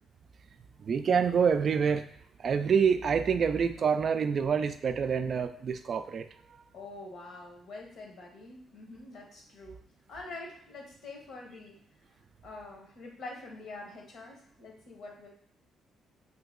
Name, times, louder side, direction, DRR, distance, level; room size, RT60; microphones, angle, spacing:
voice 1, 0.8-2.1 2.4-6.3, right 6 dB, 50° right, 10 dB, 0.3 m, -27 dB
voice 2, 6.7-9.8 10.1-11.8 12.4-15.3, left 2 dB, 70° left, 0 dB, 1.0 m, -45 dB
3.0 x 2.8 x 3.6 m, 0.65 s
cardioid pair, 90°, 0 cm